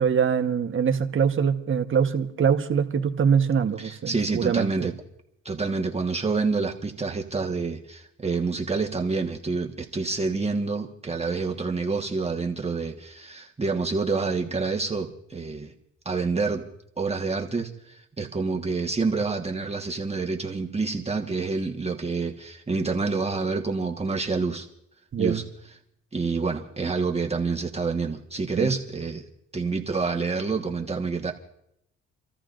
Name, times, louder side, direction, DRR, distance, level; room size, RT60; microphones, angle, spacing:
voice 1, 0.0-4.9 25.1-25.4 28.6-28.7, right 7 dB, 40° right, 6 dB, 1.2 m, -23 dB
voice 2, 3.8-4.9 5.4-15.7 16.0-16.6 17.0-24.7 25.2-25.4 26.1-29.2 29.5-31.3, right 4 dB, 20° right, 1 dB, 1.4 m, -27 dB
29.5 x 14.0 x 2.6 m, 0.77 s
cardioid pair, 90°, 30 cm